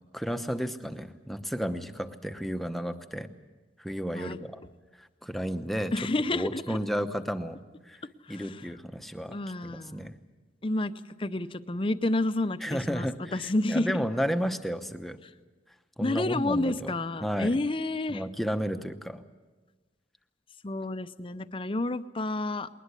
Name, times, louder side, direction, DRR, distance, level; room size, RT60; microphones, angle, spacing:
voice 1, 0.1-3.3 3.8-4.6 5.0-5.9 6.3-8.0 8.3-9.4 9.6-10.2 12.6-15.2 16.0-16.9 17.2-17.5 18.1-19.2, equal, ahead, 8 dB, 0.9 m, -32 dB
voice 2, 5.9-6.8 8.3-8.6 9.3-10.1 10.6-10.9 11.2-14.0 16.0-18.2 20.6-22.7, left 2 dB, 30° left, 12 dB, 0.6 m, -30 dB
21.0 x 19.5 x 8.3 m, 1.3 s
head